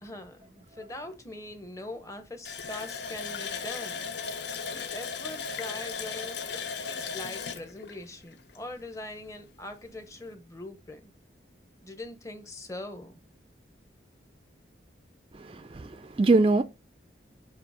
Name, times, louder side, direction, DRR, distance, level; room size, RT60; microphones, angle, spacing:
voice 1, 0.0-4.1 4.7-11.1 11.8-13.1, left 1 dB, 15° left, 0.8 m, -42 dB
Water tap faucet, 2.4-8.9 9.3-9.4 9.8-10.0, left 5 dB, 70° left, 0.7 m, -36 dB
voice 2, 15.3-16.6, right 3 dB, 30° right, 0.4 m, -23 dB
7.7 x 3.0 x 4.8 m
head